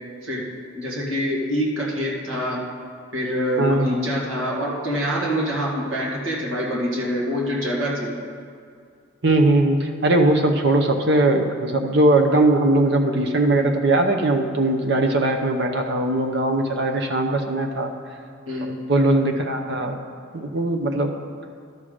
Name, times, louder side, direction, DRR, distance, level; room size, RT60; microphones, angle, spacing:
voice 1, 0.7-2.6 3.1-8.1 18.5-18.7, equal, 75° right, -4 dB, 1.9 m, -25 dB
voice 2, 3.6-4.1 9.2-17.9 18.6-20.0 20.3-21.1, right 2 dB, 55° right, 4 dB, 0.8 m, -20 dB
12.5 x 5.7 x 5.0 m, 2.2 s
head